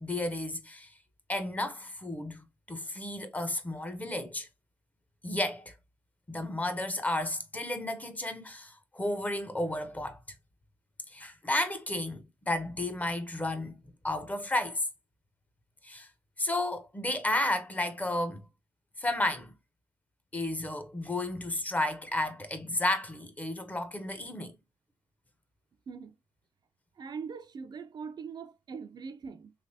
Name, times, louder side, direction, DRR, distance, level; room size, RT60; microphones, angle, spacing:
voice 1, 0.0-0.9 1.3-4.5 5.2-5.7 6.3-10.2 11.1-14.9 15.8-16.1 16.4-18.4 19.0-19.5 20.3-24.5, left 1 dB, 15° left, 0.6 m, -32 dB
voice 2, 27.0-29.5, right 5 dB, 45° right, 0.4 m, -41 dB
3.2 x 2.9 x 2.7 m
cardioid pair, 90°, 10 cm